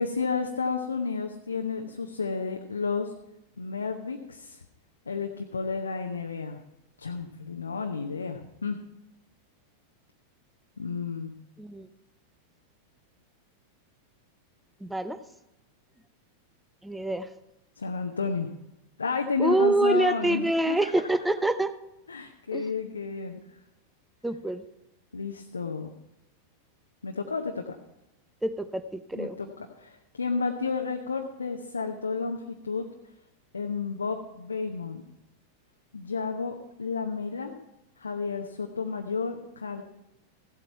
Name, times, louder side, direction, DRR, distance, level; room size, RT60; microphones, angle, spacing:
voice 1, 0.0-3.1 3.6-4.6 5.1-6.6 7.0-8.8 10.8-11.4 17.8-18.5 19.0-20.9 22.1-23.6 25.1-25.9 27.0-27.8 29.1-29.5 29.8-32.9 33.5-35.0 35.9-37.6 38.0-39.8, left 5 dB, 75° left, 3 dB, 0.8 m, -31 dB
voice 2, 14.8-15.2 16.8-17.3 19.4-21.7 22.5-22.7 24.2-24.6 28.4-29.4, right 2 dB, 5° right, 12 dB, 0.7 m, -26 dB
15.0 x 8.2 x 4.6 m, 0.92 s
figure-of-eight pair, 90°, 0 cm